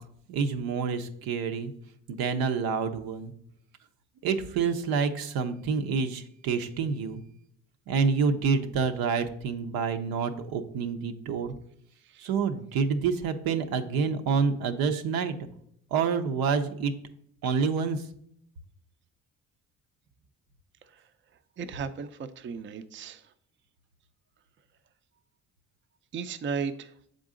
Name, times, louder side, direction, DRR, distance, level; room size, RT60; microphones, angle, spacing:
voice 1, 0.3-1.7 2.1-3.3 4.2-7.2 7.9-11.6 12.2-15.5 15.9-16.9 17.4-18.1, right 5 dB, 80° right, 8 dB, 0.7 m, -28 dB
voice 2, 21.6-23.2 26.1-26.9, right 6 dB, 35° right, 11 dB, 0.4 m, -35 dB
7.1 x 3.8 x 3.7 m, 0.70 s
cardioid pair, 80°, 36 cm